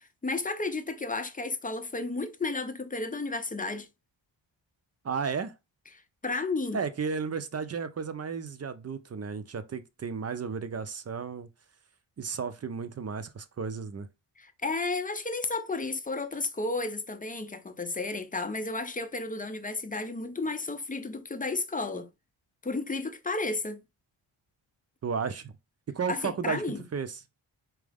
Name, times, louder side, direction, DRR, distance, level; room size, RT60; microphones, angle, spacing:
voice 1, 0.0-3.9 5.9-6.8 14.4-22.1 22.6-23.8 26.1-26.8, left 3 dB, 15° left, 0.6 m, -33 dB
voice 2, 5.0-5.5 6.7-11.5 12.2-14.1 25.0-25.5 25.9-26.6 26.9-27.2, right 5 dB, 30° right, 0.5 m, -33 dB
4.5 x 2.0 x 3.4 m
cardioid pair, 60°, 49 cm